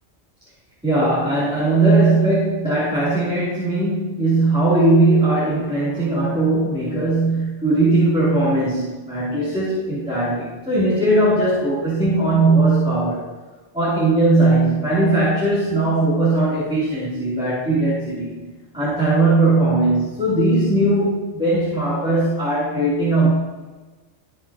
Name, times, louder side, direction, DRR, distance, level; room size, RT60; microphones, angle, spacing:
voice 1, 0.8-13.3 13.7-18.4 18.7-23.3, right 2 dB, 5° right, -12 dB, 3.1 m, -19 dB
16.5 x 6.0 x 2.9 m, 1.2 s
omnidirectional pair, 1.3 m